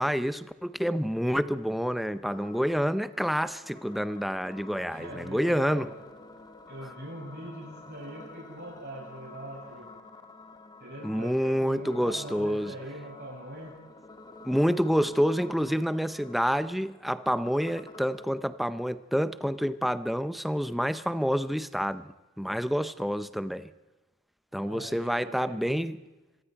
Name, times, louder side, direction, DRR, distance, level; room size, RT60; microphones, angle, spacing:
voice 1, 0.0-5.9 6.8-6.9 11.0-12.7 14.4-23.7 24.5-26.0, equal, ahead, 0.6 m, -28 dB
sound 1, 2.3-18.3, left 2 dB, 20° left, 1.4 m, -49 dB
voice 2, 4.9-5.9 6.7-9.9 10.8-13.7 24.5-25.8, right 1 dB, 45° right, 7.9 m, -42 dB
25.5 x 22.5 x 4.7 m
head